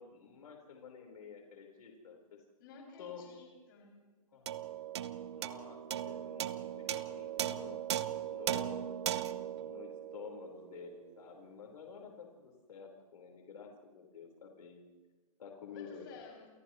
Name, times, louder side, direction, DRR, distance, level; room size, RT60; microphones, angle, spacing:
voice 1, 0.0-2.4 3.0-3.2 4.3-4.5 5.3-7.8 8.3-9.0 9.6-14.8 15.4-16.0, left 6 dB, 75° left, 1 dB, 4.8 m, -50 dB
voice 2, 2.6-4.0 15.7-16.5, left 5 dB, 35° left, -1 dB, 7.1 m, -53 dB
sound 1, 4.5-11.1, right 10 dB, 45° right, 0.8 m, -38 dB
29.0 x 29.0 x 3.2 m, 1.3 s
hypercardioid pair, 175°, 19 cm